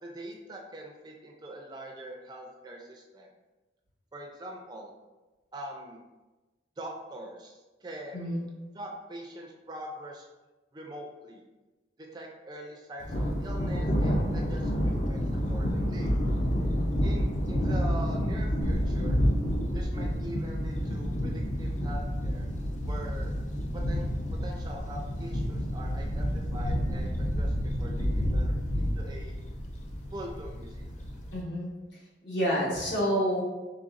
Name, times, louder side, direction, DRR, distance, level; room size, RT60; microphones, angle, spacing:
voice 1, 0.0-3.3 4.1-4.9 5.5-6.0 6.8-8.3 8.7-10.3 10.7-11.4 12.0-16.1 17.0-19.2 19.7-21.3 21.6-22.5 22.8-23.3 23.7-24.1 24.4-29.4 30.1-30.9, right 1 dB, 20° right, 0 dB, 0.4 m, -43 dB
Thunder, 13.0-31.4, equal, 40° left, 0.4 m, -29 dB
voice 2, 31.3-31.7 32.2-33.4, equal, 65° left, -5 dB, 1.3 m, -28 dB
3.9 x 3.3 x 2.4 m, 1.1 s
head